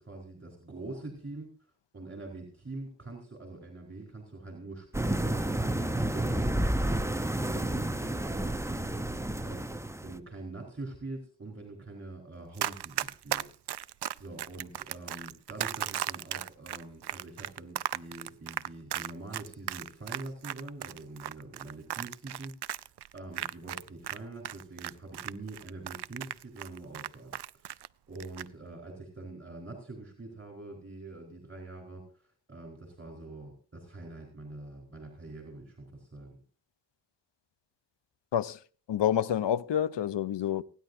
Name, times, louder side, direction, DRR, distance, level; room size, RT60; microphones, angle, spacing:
voice 1, 0.0-1.5 1.9-13.9 14.2-27.8 28.1-36.4, right 2 dB, 30° right, 4.4 m, -44 dB
sound 1, 4.9-10.2, right 1 dB, 5° right, 0.8 m, -30 dB
Run, 12.6-24.2 24.4-27.9 28.2-28.5, right 12 dB, 70° right, 0.6 m, -36 dB
voice 2, 38.9-40.6, left 10 dB, 90° left, 0.7 m, -28 dB
30.0 x 10.5 x 2.7 m
wide cardioid pair, 95°, 42 cm